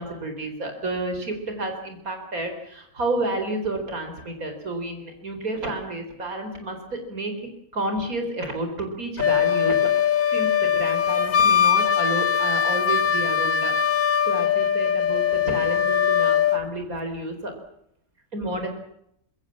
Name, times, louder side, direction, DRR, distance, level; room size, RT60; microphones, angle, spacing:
voice 1, 0.0-7.3 7.7-9.9 10.3-13.7 14.2-17.5 18.3-18.7, right 1 dB, 85° right, 5 dB, 4.7 m, -30 dB
Wind instrument woodwind instrument, 9.2-16.6, left 8 dB, 75° left, 1.9 m, -21 dB
26.0 x 22.5 x 7.4 m, 0.75 s
omnidirectional pair, 1.5 m